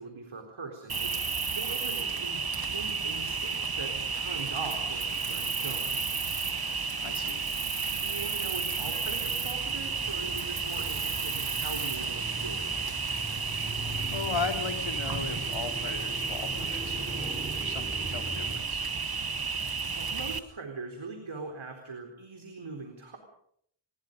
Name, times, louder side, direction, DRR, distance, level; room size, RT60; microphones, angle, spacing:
voice 1, 0.0-6.0 8.0-12.7 19.6-23.2, right 4 dB, 80° right, 3 dB, 4.1 m, -41 dB
Cricket, 0.9-20.4, right 5 dB, 50° right, 1.5 m, -32 dB
voice 2, 6.6-7.4 14.1-17.2 17.6-18.9, left 5 dB, 75° left, 4 dB, 3.1 m, -37 dB
sound 1, 8.7-18.6, equal, 15° right, 7.2 m, -41 dB
30.0 x 21.0 x 5.3 m, 0.68 s
wide cardioid pair, 55°, 47 cm